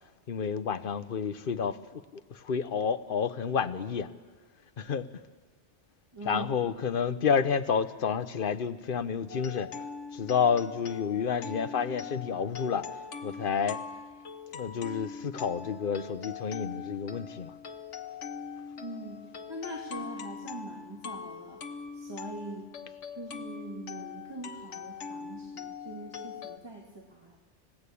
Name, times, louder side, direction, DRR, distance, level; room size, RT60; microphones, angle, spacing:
voice 1, 0.3-4.1 4.8-5.2 6.2-9.7 10.1-12.9 13.2-13.8 14.5-17.5, left 6 dB, 50° left, 1.0 m, -30 dB
voice 2, 6.1-6.5 18.8-21.6 21.9-22.7 23.2-27.4, right 1 dB, 20° right, 2.3 m, -42 dB
sound 1, 9.3-26.6, left 6 dB, 90° left, 1.5 m, -42 dB
30.0 x 16.5 x 8.5 m
omnidirectional pair, 1.2 m